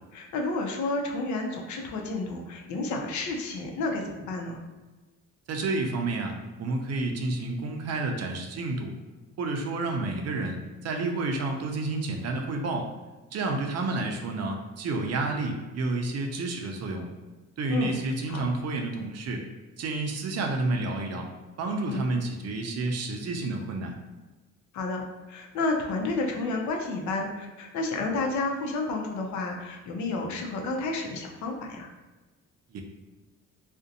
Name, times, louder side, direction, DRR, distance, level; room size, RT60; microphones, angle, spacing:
voice 1, 0.1-4.6 17.7-17.9 18.3-18.4 21.9-22.0 24.7-25.0 25.3-31.9, left 3 dB, 70° left, 2 dB, 0.5 m, -31 dB
voice 2, 5.5-8.9 9.4-12.9 13.3-17.1 17.6-19.4 19.8-21.3 21.6-23.9 32.7-32.8, right 2 dB, 55° right, 3 dB, 0.5 m, -30 dB
2.5 x 2.1 x 2.7 m, 1.2 s
cardioid pair, 90°, 30 cm